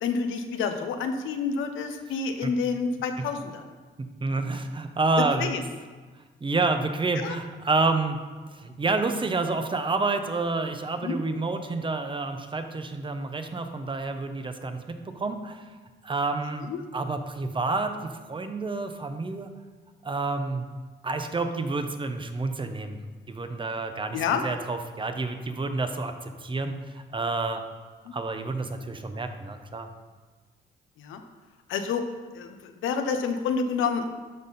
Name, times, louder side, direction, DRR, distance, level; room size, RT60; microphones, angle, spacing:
voice 1, 0.0-3.6 5.4-5.6 7.2-7.4 11.0-11.2 16.7-16.9 24.1-24.4 28.1-28.2 31.0-31.2 31.7-32.0 32.3-34.1, left 5 dB, 85° left, 6 dB, 0.8 m, -28 dB
voice 2, 4.0-5.5 6.4-8.2 8.5-15.7 16.0-16.7 16.9-19.5 20.0-20.6 21.0-23.0 23.3-27.6 28.1-29.9, right 3 dB, 25° right, 7 dB, 0.7 m, -29 dB
12.0 x 4.0 x 4.0 m, 1.4 s
cardioid pair, 90°, 20 cm